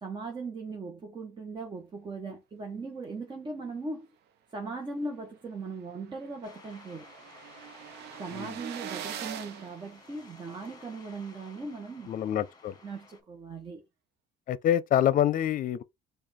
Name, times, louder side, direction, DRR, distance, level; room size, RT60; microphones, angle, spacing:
voice 1, 0.0-4.1 4.5-7.1 8.2-12.1 12.8-13.8, right 3 dB, 25° right, 1.0 m, -39 dB
sound 1, 5.1-5.2 5.5-5.6 5.8-10.7, right 9 dB, 80° right, 0.8 m, -43 dB
sound 2, 6.4-13.2, left 3 dB, 25° left, 1.4 m, -54 dB
voice 2, 12.1-12.7 14.5-15.8, left 11 dB, 55° left, 0.6 m, -26 dB
5.0 x 2.4 x 4.2 m
cardioid pair, 110°, 17 cm